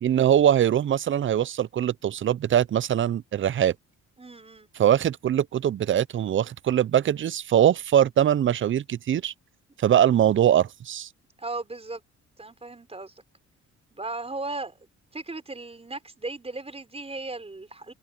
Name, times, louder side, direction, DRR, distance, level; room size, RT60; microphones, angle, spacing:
voice 1, 0.0-3.7 4.8-9.3 9.8-11.1, right 10 dB, 40° right, 0.5 m, -22 dB
voice 2, 4.2-4.7 11.4-12.0 12.4-13.1 13.9-14.8 15.1-17.9, right 2 dB, 20° right, 5.1 m, -36 dB
open air
cardioid pair, 90°, 30 cm